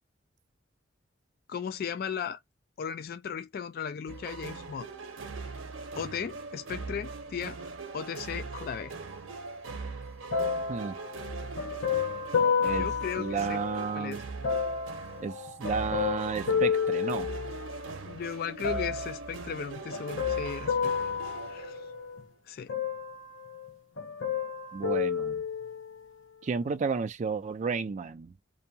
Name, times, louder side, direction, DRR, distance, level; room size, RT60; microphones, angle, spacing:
voice 1, 1.5-2.4 2.8-4.9 6.0-7.6 7.9-8.9 12.6-13.6 13.9-14.2 18.1-20.9 21.5-21.8 22.5-22.7, left 7 dB, 50° left, 0.3 m, -36 dB
sound 1, 4.1-22.2, right 4 dB, 85° right, 0.7 m, -41 dB
sound 2, 10.3-13.9 14.4-17.9 18.6-19.3 19.9-22.2 22.7-23.7 24.0-26.0 26.7-26.8, left 6 dB, 80° left, 0.7 m, -31 dB
voice 2, 13.2-14.3 15.2-17.3 24.7-25.4 26.4-28.3, right 5 dB, 40° right, 0.3 m, -32 dB
2.7 x 2.2 x 2.7 m
head